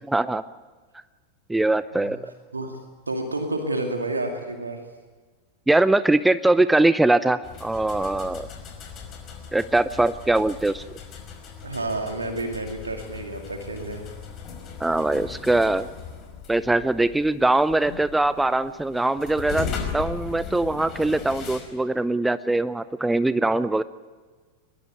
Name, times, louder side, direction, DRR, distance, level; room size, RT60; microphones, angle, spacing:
voice 1, 0.1-0.4 1.5-2.2 5.7-8.5 9.5-10.8 14.8-15.9 16.5-23.8, right 2 dB, 5° right, 15 dB, 0.7 m, -22 dB
voice 2, 3.1-4.8 11.6-14.0, right 2 dB, 80° right, 4 dB, 2.4 m, -30 dB
sound 1, 7.4-21.6, left 6 dB, 30° left, 5.5 m, -38 dB
22.0 x 21.5 x 9.5 m, 1.4 s
figure-of-eight pair, 90°, 0 cm